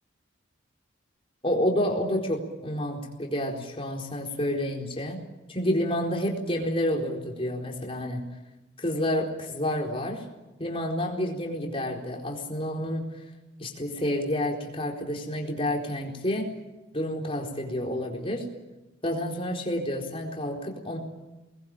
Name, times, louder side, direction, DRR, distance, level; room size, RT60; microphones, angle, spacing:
voice 1, 1.4-5.2 5.5-8.2 8.8-10.2 10.6-13.0 13.6-16.5 16.9-18.5 19.0-21.0, left 1 dB, 30° left, 0 dB, 4.2 m, -29 dB
24.5 x 21.0 x 9.1 m, 1.1 s
head